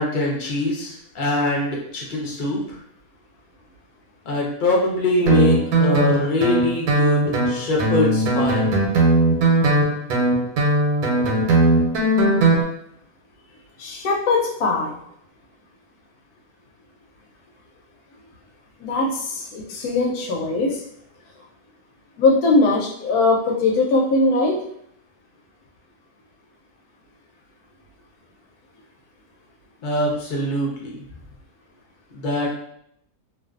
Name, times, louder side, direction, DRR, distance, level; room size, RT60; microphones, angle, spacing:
voice 1, 0.0-2.8 4.2-8.7 29.8-31.0 32.1-32.5, left 2 dB, 45° left, -2 dB, 0.6 m, -23 dB
Guitar, 5.3-12.6, right 2 dB, 85° right, 1.2 m, -18 dB
voice 2, 13.8-15.0 18.8-20.8 22.2-24.6, left 3 dB, 80° left, 0 dB, 1.1 m, -20 dB
2.5 x 2.5 x 2.4 m, 0.70 s
omnidirectional pair, 1.6 m